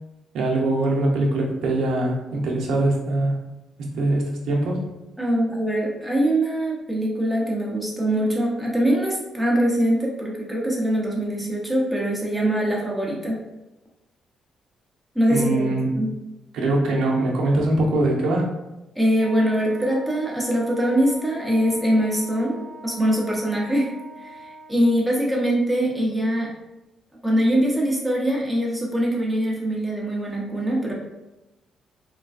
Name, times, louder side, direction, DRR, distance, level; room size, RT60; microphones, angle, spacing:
voice 1, 0.3-3.4 3.8-4.8 15.3-15.9 16.5-18.5, right 2 dB, 75° right, -1 dB, 0.6 m, -22 dB
voice 2, 5.2-13.4 15.1-15.6 15.9-16.1 18.9-26.5 27.2-30.9, right 1 dB, 5° right, -4 dB, 0.9 m, -23 dB
Wind instrument woodwind instrument, 19.2-24.9, equal, 60° left, 1.3 m, -42 dB
3.2 x 2.2 x 2.4 m, 0.98 s
cardioid pair, 90°, 0 cm